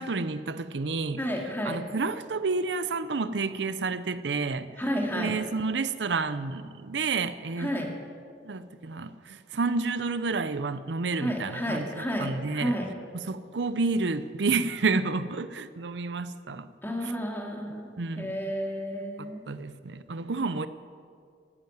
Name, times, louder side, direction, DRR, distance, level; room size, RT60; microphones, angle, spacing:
voice 1, 0.0-1.2 1.6-4.7 5.1-7.9 8.4-12.7 13.1-16.7 17.0-17.1 18.0-18.4 19.5-20.7, right 4 dB, 85° right, 13 dB, 0.7 m, -30 dB
voice 2, 1.2-1.8 4.8-5.3 7.6-7.9 11.2-12.9 16.8-17.9 18.2-19.4, equal, 15° left, 0 dB, 2.4 m, -31 dB
15.0 x 10.5 x 9.3 m, 2.2 s
head